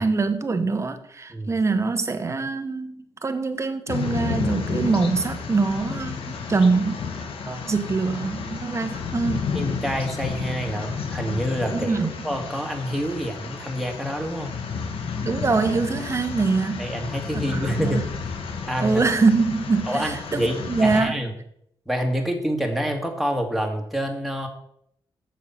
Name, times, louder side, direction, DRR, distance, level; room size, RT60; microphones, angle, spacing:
voice 1, 0.0-7.0 7.5-9.5 11.7-12.1 15.2-16.9 17.5-18.0 18.8-21.2, right 4 dB, 30° right, 9 dB, 1.1 m, -24 dB
sound 1, 3.9-21.0, left 5 dB, 80° left, 1.4 m, -32 dB
voice 2, 9.5-12.0 12.2-14.6 16.8-18.0 18.7-19.0 19.9-21.3 21.9-24.5, equal, ahead, 2 dB, 2.0 m, -27 dB
7.3 x 6.9 x 5.7 m, 0.72 s
cardioid pair, 80°, 9 cm